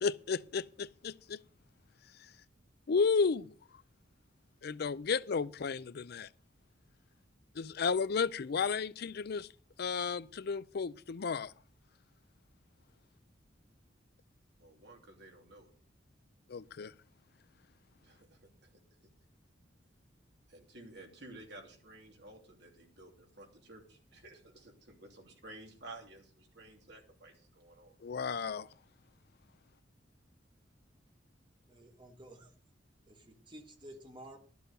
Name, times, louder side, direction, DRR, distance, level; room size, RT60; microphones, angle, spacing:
voice 1, 0.0-1.4 2.9-3.5 4.6-6.3 7.6-9.5 9.8-11.5 16.5-16.9 28.0-28.7, left 5 dB, 55° left, 0.4 m, -33 dB
voice 2, 14.6-15.7 18.0-18.4 20.5-28.0, right 2 dB, 65° right, 3.0 m, -53 dB
voice 3, 31.7-32.5 33.1-34.4, right 1 dB, 25° right, 1.8 m, -52 dB
12.5 x 7.0 x 6.6 m
head